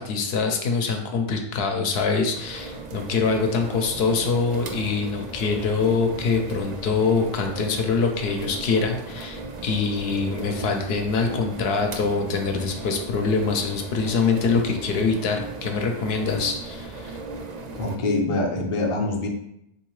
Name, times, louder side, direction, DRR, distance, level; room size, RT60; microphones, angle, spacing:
voice 1, 0.0-17.2, left 4 dB, 80° left, 4 dB, 0.8 m, -24 dB
sound 1, 2.3-18.0, right 3 dB, 55° right, 0.5 m, -36 dB
voice 2, 17.7-19.3, left 2 dB, 40° left, 1 dB, 0.5 m, -24 dB
3.7 x 2.7 x 3.0 m, 0.78 s
omnidirectional pair, 1.0 m